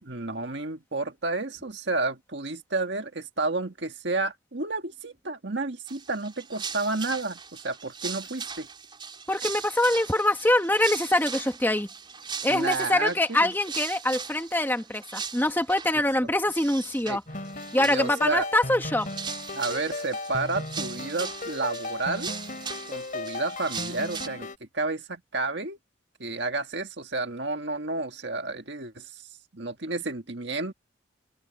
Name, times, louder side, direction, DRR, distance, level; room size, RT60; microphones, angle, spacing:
voice 1, 0.0-8.7 12.5-13.5 17.1-17.2 17.8-18.5 19.5-22.4 22.9-24.5 24.7-25.8 26.2-29.2 29.5-30.7, right 3 dB, 60° right, 1.8 m, -31 dB
sound 1, 5.9-16.0 16.5-17.2 17.4-18.3 18.6-24.3, right 6 dB, 25° right, 4.9 m, -39 dB
voice 2, 9.3-11.9 12.4-17.2 17.7-19.1, left 1 dB, 10° left, 2.0 m, -24 dB
sound 2, 17.3-24.6, left 2 dB, 40° left, 3.3 m, -36 dB
open air
head